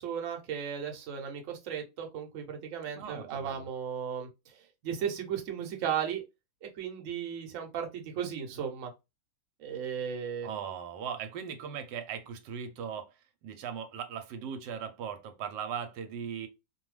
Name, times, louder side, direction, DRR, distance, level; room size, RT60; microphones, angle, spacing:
voice 1, 0.0-4.5 4.8-6.2 6.6-8.9 9.6-10.5, right 8 dB, 60° right, 0.9 m, -35 dB
voice 2, 2.9-3.7 10.4-13.1 13.4-16.5, right 7 dB, 85° right, 1.2 m, -38 dB
2.6 x 2.3 x 3.1 m
omnidirectional pair, 1.8 m